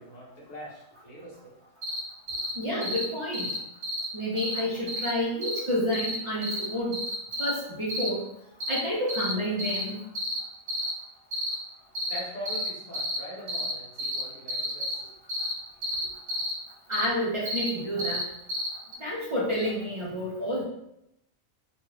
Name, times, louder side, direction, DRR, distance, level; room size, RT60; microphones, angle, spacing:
voice 1, 0.0-1.5 12.1-15.1 15.9-16.1, equal, 35° left, -6 dB, 1.1 m, -42 dB
sound 1, 1.8-2.0 2.3-2.5 2.8-3.0 3.3-3.6 3.8-4.1 4.4-4.6 4.9-5.1 5.4-5.6 5.9-6.2 6.4-6.6 6.9-7.5 7.9-8.1 8.6-8.8 9.1-9.3 9.6-9.8 10.1-10.4 10.7-10.9 11.3-11.5 11.9-12.2 12.4-12.7 12.9-13.2 13.5-13.7 14.0-14.2 14.5-14.9 15.3-15.5 15.8-16.5 16.9-17.1 17.4-17.7 18.0-18.2 18.5-18.7 18.9-19.0, equal, 60° right, 0.9 m, -31 dB
voice 2, 2.6-3.5 4.1-7.0 7.4-8.3 8.7-10.0 16.9-18.2 19.0-20.6, equal, 35° right, -7 dB, 0.5 m, -29 dB
3.0 x 2.4 x 3.4 m, 0.82 s
omnidirectional pair, 1.4 m